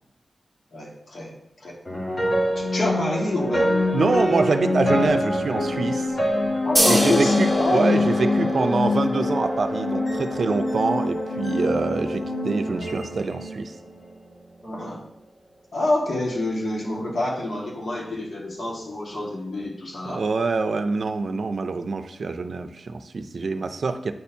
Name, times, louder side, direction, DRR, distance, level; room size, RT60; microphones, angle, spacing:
voice 1, 0.7-1.3 1.6-1.8 2.6-3.7 6.6-8.1 14.6-15.0 15.7-20.2, left 2 dB, 70° left, -3 dB, 1.8 m, -27 dB
sound 1, 1.8-14.1, left 1 dB, 45° left, 1.8 m, -25 dB
voice 2, 3.9-6.1 6.8-13.8 20.0-24.1, right 4 dB, 65° right, 9 dB, 0.5 m, -25 dB
sound 2, 6.8-13.9, equal, 20° left, 2.0 m, -29 dB
9.1 x 4.3 x 2.7 m, 0.83 s
wide cardioid pair, 80°, 0 cm